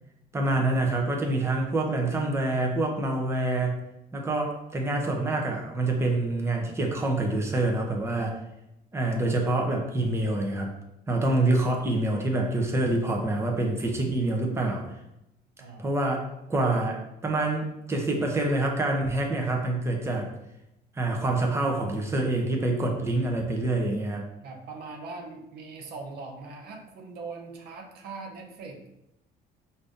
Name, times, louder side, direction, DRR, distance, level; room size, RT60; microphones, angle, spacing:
voice 1, 0.3-3.8 4.1-8.3 8.9-10.8 11.1-14.8 15.8-16.2 16.5-20.3 21.0-24.3, right 2 dB, 15° right, 1 dB, 0.8 m, -26 dB
voice 2, 24.4-28.8, right 3 dB, 75° right, 3 dB, 0.8 m, -41 dB
5.0 x 2.7 x 3.5 m, 0.88 s
cardioid pair, 110°, 17 cm